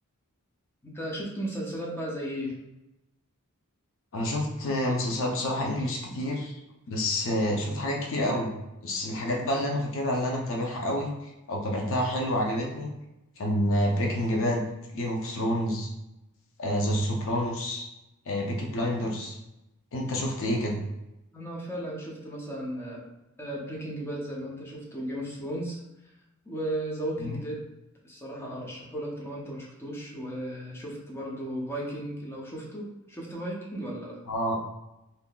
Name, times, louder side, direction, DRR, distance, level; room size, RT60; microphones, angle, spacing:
voice 1, 0.8-2.6 21.3-23.0 23.4-25.8 26.5-27.6 28.0-34.2, right 1 dB, 10° left, -4 dB, 0.6 m, -35 dB
voice 2, 4.1-6.5 6.9-8.5 8.8-12.9 13.4-14.6 14.9-15.9 16.6-17.8 18.3-19.4 19.9-20.8 27.2-27.4 34.3-34.6, left 1 dB, 65° left, 0 dB, 0.6 m, -28 dB
3.6 x 2.7 x 2.3 m, 0.94 s
head